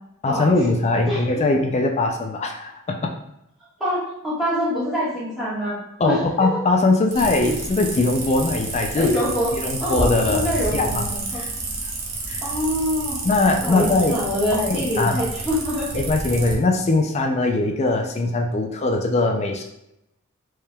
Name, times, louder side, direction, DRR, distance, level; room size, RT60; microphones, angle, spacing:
voice 1, 0.2-3.1 6.0-9.1 9.5-11.1 11.3-11.5 12.3-12.4 13.2-14.1 14.6-15.2 15.9-19.6, left 2 dB, 30° left, 3 dB, 0.3 m, -21 dB
voice 2, 3.8-6.2 9.0-9.5 9.8-11.4 12.4-13.2 13.6-15.9, left 1 dB, ahead, -11 dB, 1.4 m, -25 dB
sound 1, 7.1-16.5, right 3 dB, 65° right, 0.9 m, -30 dB
4.6 x 3.3 x 2.2 m, 0.82 s
head